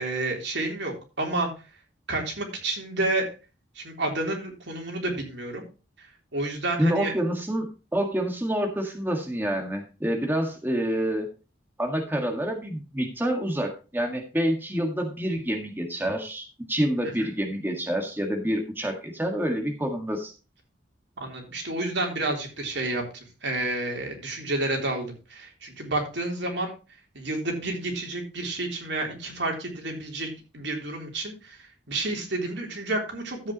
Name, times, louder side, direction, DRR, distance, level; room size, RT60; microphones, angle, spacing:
voice 1, 0.0-1.5 2.1-3.3 3.7-5.6 6.0-6.1 6.3-7.1 17.0-17.1 21.2-23.0 23.4-26.7 27.1-31.6 31.9-33.5, right 2 dB, 70° right, 1 dB, 3.5 m, -30 dB
voice 2, 6.8-11.3 11.8-20.3, equal, 10° right, 3 dB, 1.8 m, -27 dB
13.0 x 8.3 x 3.0 m, 0.32 s
head